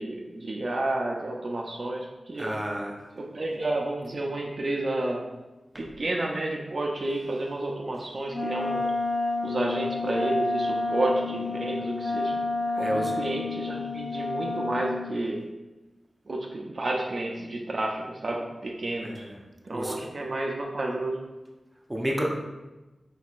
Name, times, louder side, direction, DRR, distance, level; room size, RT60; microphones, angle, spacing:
voice 1, 0.0-2.5 3.2-5.2 5.8-8.9 9.4-12.4 12.8-15.4 16.3-19.3 19.6-21.2, right 2 dB, 55° right, 0 dB, 0.5 m, -30 dB
voice 2, 2.4-2.9 5.7-5.8 12.8-13.2 19.0-19.3 19.7-20.1 21.9-22.3, equal, 15° right, -1 dB, 0.7 m, -30 dB
Wind instrument woodwind instrument, 8.3-15.1, left 3 dB, 35° left, 1.1 m, -29 dB
4.3 x 3.9 x 2.4 m, 1.1 s
wide cardioid pair, 65°, 0 cm